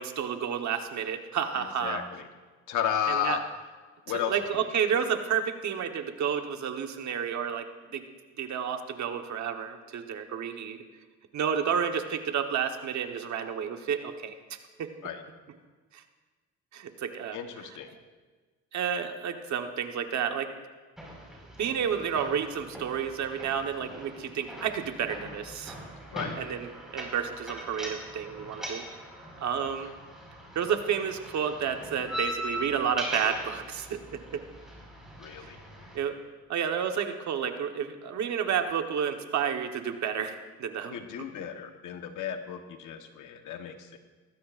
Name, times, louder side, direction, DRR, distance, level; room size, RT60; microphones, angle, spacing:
voice 1, 0.0-2.0 3.1-3.4 4.3-8.0 8.4-10.8 11.3-14.9 15.9-16.0 16.7-17.4 18.7-20.5 21.6-25.8 26.3-28.8 29.4-29.9 30.5-34.4 35.4-35.5 35.9-36.2 36.5-40.9, right 7 dB, 65° right, 6 dB, 1.3 m, -31 dB
voice 2, 1.6-2.2 2.7-3.4 4.1-4.6 15.0-15.2 17.3-18.0 26.1-26.4 35.2-35.6 40.9-44.0, left 9 dB, 80° left, 6 dB, 1.3 m, -33 dB
sound 1, 21.0-36.0, right 1 dB, ahead, 5.0 m, -41 dB
19.5 x 15.0 x 2.6 m, 1.4 s
cardioid pair, 90°, 30 cm